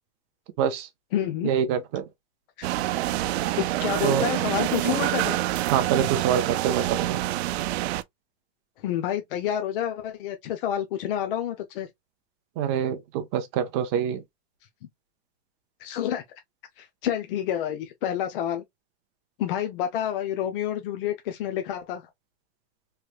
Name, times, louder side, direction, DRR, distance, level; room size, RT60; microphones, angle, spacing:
voice 1, 0.6-0.9 1.4-2.1 4.0-4.3 5.7-7.2 12.6-14.2, right 8 dB, 30° right, 0.5 m, -25 dB
voice 2, 1.1-1.5 2.6-2.7 3.6-5.4 8.8-11.9 15.8-16.2 16.8-18.6 19.4-22.1, left 10 dB, 55° left, 0.6 m, -29 dB
sound 1, 2.6-8.0, right 15 dB, 80° right, 0.5 m, -27 dB
3.2 x 3.2 x 2.3 m
supercardioid pair, 175°, 32 cm